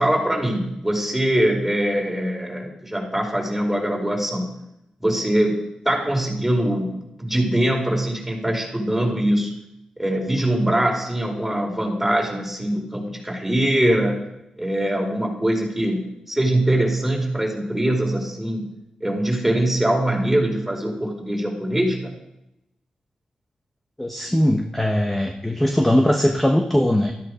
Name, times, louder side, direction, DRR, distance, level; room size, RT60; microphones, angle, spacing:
voice 1, 0.0-4.5 5.0-9.5 10.0-14.2 14.6-18.6 19.0-22.1, right 1 dB, 5° right, -1 dB, 5.1 m, -22 dB
voice 2, 24.0-27.1, left 1 dB, 10° left, 3 dB, 1.3 m, -20 dB
14.0 x 13.5 x 5.2 m, 0.85 s
cardioid pair, 75°, 2 cm